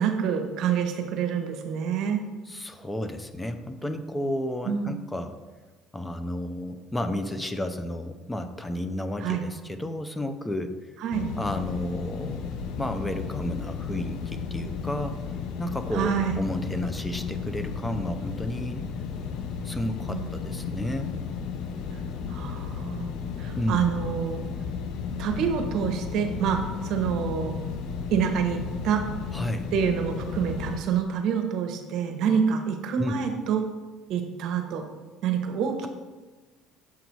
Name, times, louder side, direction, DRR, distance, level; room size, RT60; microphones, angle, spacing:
voice 1, 0.0-2.2 4.7-4.9 9.2-9.4 11.0-11.3 15.9-16.4 20.1-20.3 22.3-23.1 23.4-24.4 25.2-27.5 28.1-29.0 29.7-33.6 34.1-34.8 35.2-35.9, right 7 dB, 65° right, 5 dB, 0.8 m, -27 dB
voice 2, 2.5-5.4 5.9-10.7 11.4-12.5 12.8-15.2 15.6-18.8 19.6-21.2 23.6-23.9 29.3-29.7 33.0-33.1, left 1 dB, 10° left, 8 dB, 0.5 m, -32 dB
sound 1, 11.1-30.8, left 6 dB, 65° left, 0.5 m, -34 dB
7.1 x 3.9 x 4.6 m, 1.3 s
supercardioid pair, 100°, 0 cm